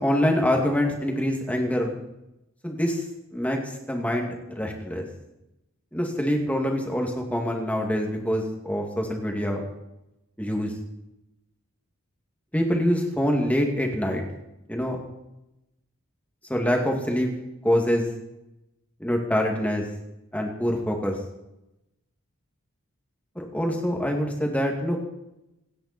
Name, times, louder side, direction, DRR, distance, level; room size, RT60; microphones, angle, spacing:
voice 1, 0.0-2.0 2.6-3.0 3.3-5.1 5.9-9.6 10.4-10.7 12.5-14.2 14.7-15.0 16.5-17.3 17.6-18.1 19.0-19.9 20.3-21.2 23.4-25.0, equal, 5° left, 1 dB, 2.3 m, -25 dB
27.0 x 10.0 x 4.4 m, 0.92 s
head